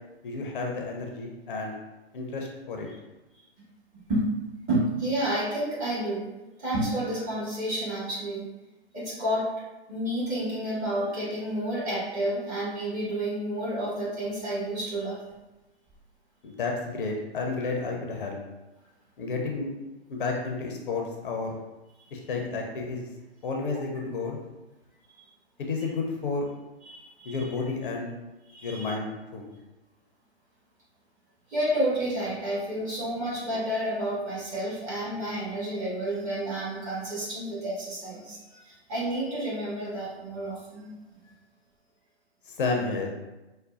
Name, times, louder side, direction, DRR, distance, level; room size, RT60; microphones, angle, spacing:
voice 1, 0.2-1.8 2.1-2.9 16.4-18.4 19.2-19.7 20.1-21.5 22.1-23.1 23.4-24.4 25.6-26.5 27.2-28.1 28.6-29.5 42.5-43.1, left 3 dB, 55° left, 1 dB, 0.6 m, -31 dB
voice 2, 4.7-6.3 6.6-8.5 8.9-9.5 9.9-15.2 22.0-22.1 23.6-23.7 26.8-27.5 28.5-28.9 31.5-40.9, right 1 dB, 25° right, -8 dB, 1.5 m, -30 dB
4.9 x 2.2 x 2.4 m, 1.1 s
figure-of-eight pair, 115°, 31 cm